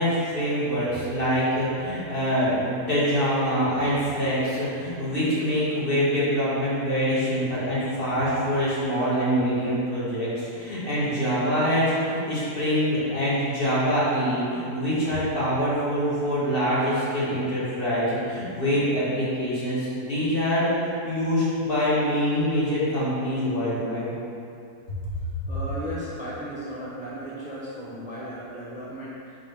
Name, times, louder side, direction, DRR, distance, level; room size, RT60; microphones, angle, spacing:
voice 1, 0.0-20.7 21.0-24.1, equal, 35° left, -9 dB, 1.6 m, -25 dB
voice 2, 25.5-29.4, equal, 10° right, -8 dB, 0.4 m, -36 dB
4.9 x 3.9 x 5.2 m, 2.6 s
omnidirectional pair, 1.7 m